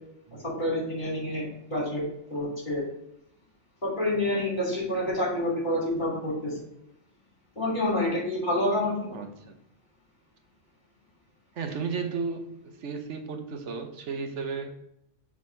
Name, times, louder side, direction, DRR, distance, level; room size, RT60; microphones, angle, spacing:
voice 1, 0.3-2.0 2.3-2.8 3.8-6.6 7.6-9.1, left 1 dB, 40° left, -4 dB, 3.1 m, -28 dB
voice 2, 9.1-9.6 11.6-14.8, right 5 dB, 75° right, 6 dB, 1.1 m, -34 dB
6.3 x 3.6 x 5.3 m, 0.76 s
omnidirectional pair, 1.2 m